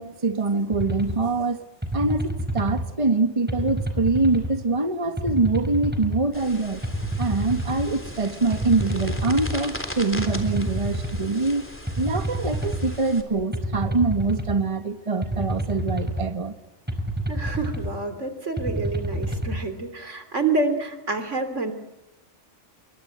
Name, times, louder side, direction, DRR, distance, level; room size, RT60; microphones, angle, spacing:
voice 1, 0.0-1.6 1.9-6.8 7.2-11.6 12.0-16.6, right 3 dB, 30° right, 8 dB, 1.5 m, -24 dB
sound 1, 0.7-1.2 1.8-2.8 3.5-4.5 5.2-6.2 6.8-7.9 8.5-9.5 10.2-11.2 11.9-12.9 13.5-14.6 15.2-16.2 16.9-17.9 18.6-19.6, right 1 dB, 10° right, 5.0 m, -28 dB
sound 2, 6.3-13.2, equal, 10° left, 3.6 m, -38 dB
voice 2, 17.3-21.7, right 3 dB, 85° right, 9 dB, 3.5 m, -28 dB
28.0 x 24.0 x 8.1 m, 0.99 s
omnidirectional pair, 1.2 m